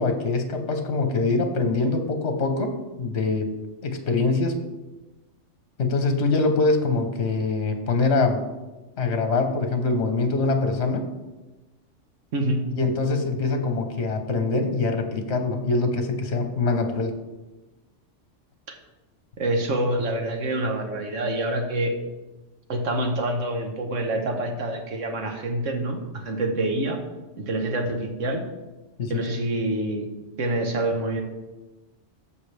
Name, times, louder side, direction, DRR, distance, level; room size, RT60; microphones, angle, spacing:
voice 1, 0.0-3.5 3.8-4.6 5.8-8.4 9.0-11.1 12.7-17.1 29.0-29.4, left 3 dB, 60° left, 6 dB, 1.3 m, -24 dB
voice 2, 12.3-12.7 19.4-22.0 22.7-27.0 27.4-28.4 29.1-30.1 30.4-31.2, right 1 dB, 75° right, 4 dB, 1.5 m, -26 dB
14.0 x 5.3 x 3.4 m, 1.1 s
omnidirectional pair, 1.3 m